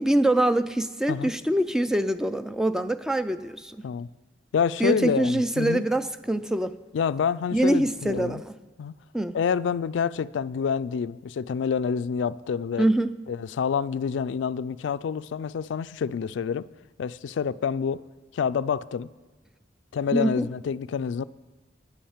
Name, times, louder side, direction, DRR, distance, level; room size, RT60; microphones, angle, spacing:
voice 1, 0.0-3.8 4.8-6.7 7.5-8.5 9.1-9.4 12.8-13.1 20.1-20.5, right 1 dB, 5° right, 0.3 m, -24 dB
voice 2, 4.5-5.9 6.9-8.4 8.8-8.9 9.3-12.9 13.3-16.7 17.0-18.0 18.3-19.1 19.9-21.2, left 6 dB, 75° left, 0.3 m, -27 dB
9.4 x 8.7 x 7.2 m
head